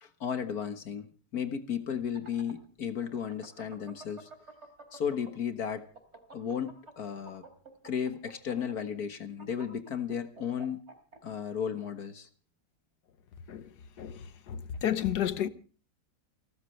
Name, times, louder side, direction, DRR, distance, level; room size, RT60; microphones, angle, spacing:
voice 1, 0.0-4.3 4.9-5.9 6.3-7.4 7.8-10.8 11.2-12.3, left 8 dB, 65° left, 1.9 m, -34 dB
sound 1, 1.9-5.5 5.8-11.2, right 3 dB, 40° right, 3.3 m, -50 dB
voice 2, 14.0-15.5, left 10 dB, 85° left, 1.6 m, -31 dB
29.0 x 13.5 x 3.3 m
omnidirectional pair, 1.7 m